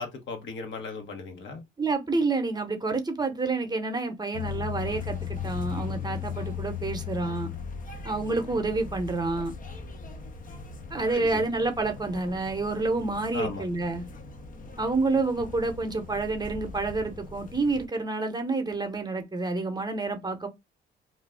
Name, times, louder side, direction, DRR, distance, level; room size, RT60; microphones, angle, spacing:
voice 1, 0.0-1.6 11.1-11.4 13.3-13.7, left 4 dB, 70° left, 1.0 m, -36 dB
voice 2, 1.8-7.5 8.0-9.5 10.9-14.0 14.8-20.5, right 3 dB, 20° right, 0.8 m, -28 dB
sound 1, 4.3-17.9, left 7 dB, 45° left, 0.6 m, -38 dB
2.5 x 2.3 x 3.3 m
cardioid pair, 90°, 20 cm